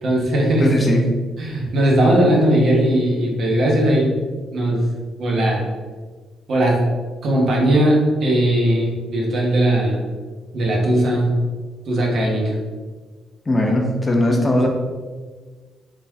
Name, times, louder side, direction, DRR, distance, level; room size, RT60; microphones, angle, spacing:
voice 1, 0.0-0.7 1.4-4.1 4.5-4.9 5.2-5.6 6.5-6.8 7.2-10.0 10.5-11.3 11.9-12.5, right 1 dB, 60° right, -2 dB, 1.2 m, -18 dB
voice 2, 0.6-1.1 13.5-14.7, left 1 dB, 20° left, 1 dB, 0.8 m, -18 dB
4.1 x 3.1 x 3.6 m, 1.4 s
cardioid pair, 90°, 0 cm